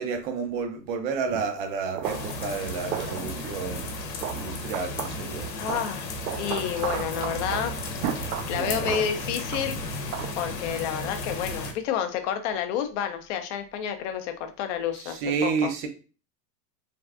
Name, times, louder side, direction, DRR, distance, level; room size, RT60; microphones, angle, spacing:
voice 1, 0.0-3.9 4.3-5.5 8.6-9.0 15.0-15.9, right 5 dB, 35° right, 6 dB, 0.4 m, -30 dB
sound 1, 1.3-1.5 1.9-2.4 2.9-3.9 4.1-5.1 5.4-10.3, right 9 dB, 90° right, 0.6 m, -35 dB
sound 2, 2.0-11.7, left 2 dB, 80° left, 0.9 m, -34 dB
voice 2, 5.6-6.1 6.4-7.7 8.2-9.8 10.4-15.7, left 9 dB, 45° left, 7 dB, 0.5 m, -30 dB
3.3 x 2.4 x 2.3 m, 0.35 s
supercardioid pair, 135°, 50 cm